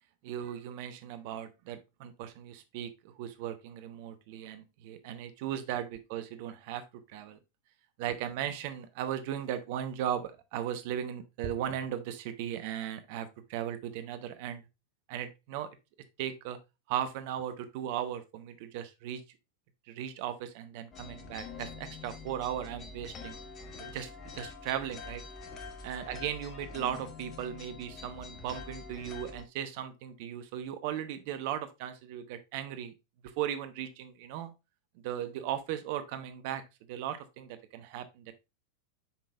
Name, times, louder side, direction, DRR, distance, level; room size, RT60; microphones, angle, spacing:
voice 1, 0.2-2.9 3.2-6.8 7.1-7.4 8.0-14.6 15.1-15.7 16.2-16.6 16.9-19.2 19.9-23.4 23.8-25.2 25.8-32.9 33.4-34.5 35.0-36.6 36.9-38.3, right 10 dB, 50° right, 10 dB, 0.8 m, -37 dB
sound 1, 20.9-29.4, left 4 dB, 30° left, 1.6 m, -45 dB
8.0 x 6.0 x 2.3 m, 0.25 s
figure-of-eight pair, 90°, 0 cm